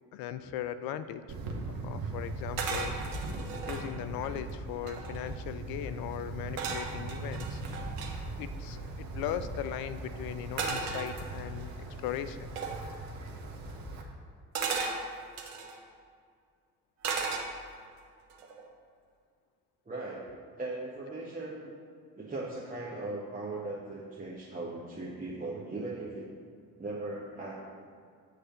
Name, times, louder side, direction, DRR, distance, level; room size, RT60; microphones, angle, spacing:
voice 1, 0.1-1.2 1.7-2.9 3.6-7.6 8.4-11.7 12.0-12.5, left 10 dB, 55° left, 12 dB, 0.5 m, -38 dB
Wind, 1.3-14.0, right 2 dB, 55° right, 1.2 m, -40 dB
sound 1, 2.6-3.9 4.4-4.5 4.7-5.4 6.6-8.1 10.6-11.6 12.6-12.8 14.5-15.8 17.0-17.9 18.3-18.6, right 4 dB, 75° right, 0.9 m, -35 dB
voice 2, 19.9-20.3 20.6-21.7 22.2-26.3 26.8-27.6, right 2 dB, 20° right, -6 dB, 1.2 m, -38 dB
7.7 x 3.3 x 6.2 m, 2.2 s
figure-of-eight pair, 45°, 44 cm